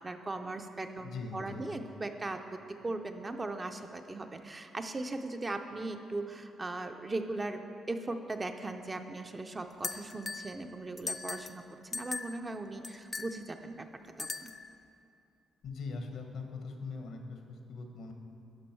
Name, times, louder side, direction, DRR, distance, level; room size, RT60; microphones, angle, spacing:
voice 1, 0.0-7.6 7.9-11.6 11.9-13.9 14.2-14.5, right 2 dB, 25° right, 6 dB, 0.5 m, -38 dB
voice 2, 1.0-1.6 15.6-18.1, left 4 dB, 75° left, 4 dB, 1.0 m, -41 dB
sound 1, 9.8-10.5 11.0-11.6 11.9-12.4 12.8-13.3 14.2-14.7, left 3 dB, 25° left, 0.4 m, -38 dB
11.5 x 5.3 x 4.4 m, 2.7 s
cardioid pair, 90°, 0 cm